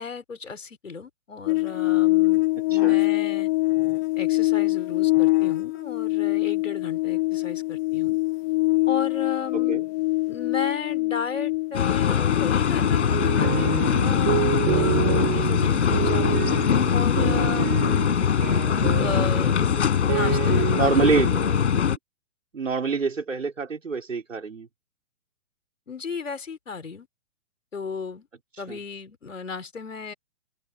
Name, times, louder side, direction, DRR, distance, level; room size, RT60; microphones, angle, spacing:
voice 1, 0.0-3.5 4.2-8.2 8.9-9.8 10.3-16.4 16.9-18.2 18.8-19.6 20.1-21.7 25.9-27.1 27.7-28.3 28.6-30.1, left 5 dB, 80° left, 4.2 m, -35 dB
sound 1, 1.5-18.0 18.3-18.4, left 22 dB, 15° left, 0.4 m, -25 dB
voice 2, 9.5-9.8 20.8-21.3 22.5-24.7 28.7-28.8, right 5 dB, 85° right, 4.0 m, -25 dB
sound 2, 11.7-22.0, left 8 dB, 65° left, 4.6 m, -22 dB
sound 3, 12.4-21.8, right 27 dB, 35° right, 6.6 m, -29 dB
figure-of-eight pair, 125°, 37 cm